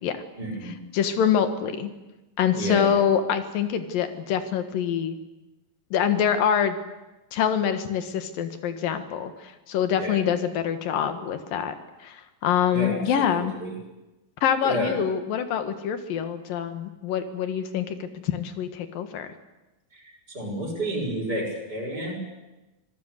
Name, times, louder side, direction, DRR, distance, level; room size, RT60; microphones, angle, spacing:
voice 1, 0.4-0.8 2.5-3.0 9.9-10.2 12.7-13.7 14.6-15.0 19.9-20.0 20.3-22.2, equal, 25° right, 0 dB, 6.8 m, -30 dB
voice 2, 0.9-1.9 2.4-5.2 5.9-6.8 7.3-9.3 9.7-11.7 12.0-12.2 12.4-13.5 14.4-19.3, left 8 dB, 70° left, 8 dB, 3.2 m, -25 dB
25.0 x 17.5 x 8.3 m, 1.1 s
omnidirectional pair, 4.3 m